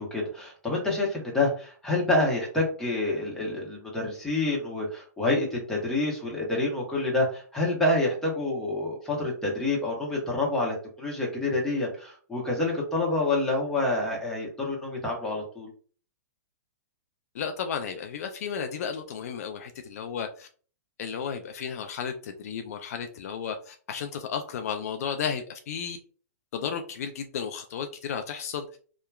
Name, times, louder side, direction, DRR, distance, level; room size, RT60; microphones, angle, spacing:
voice 1, 0.0-15.7, left 2 dB, 5° left, -3 dB, 1.0 m, -27 dB
voice 2, 17.3-20.5 21.0-26.0 26.5-28.8, left 7 dB, 60° left, 6 dB, 0.4 m, -33 dB
2.8 x 2.2 x 2.3 m, 0.41 s
hypercardioid pair, 135°, 9 cm